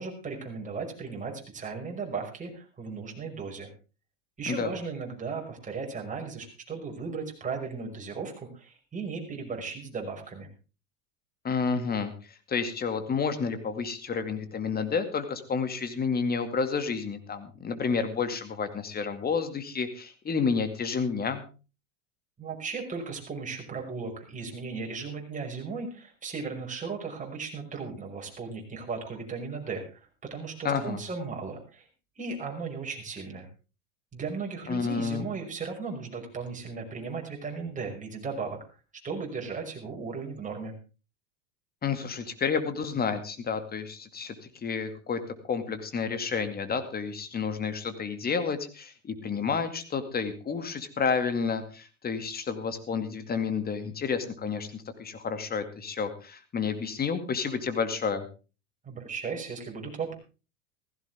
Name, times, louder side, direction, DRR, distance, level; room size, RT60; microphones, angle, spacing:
voice 1, 0.0-3.7 4.4-10.5 22.4-31.9 32.2-33.5 34.1-38.6 39.0-40.8 58.8-60.1, right 4 dB, 20° right, 0 dB, 5.5 m, -36 dB
voice 2, 11.4-21.4 30.6-31.0 34.7-35.3 41.8-58.3, left 5 dB, 25° left, 10 dB, 2.3 m, -30 dB
16.5 x 15.0 x 3.5 m, 0.33 s
hypercardioid pair, 95°, 37 cm